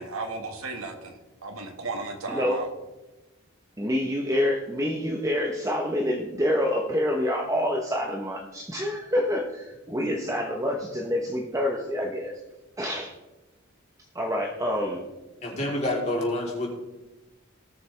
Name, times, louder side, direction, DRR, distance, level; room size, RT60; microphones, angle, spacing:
voice 1, 0.0-2.7, right 3 dB, 90° right, 4 dB, 1.7 m, -35 dB
voice 2, 2.3-2.6 3.8-12.4 12.8-13.1 14.1-15.1, left 1 dB, 15° right, 0 dB, 0.9 m, -27 dB
voice 3, 15.4-16.7, left 1 dB, 35° left, -3 dB, 3.2 m, -28 dB
19.0 x 6.6 x 3.3 m, 1.1 s
head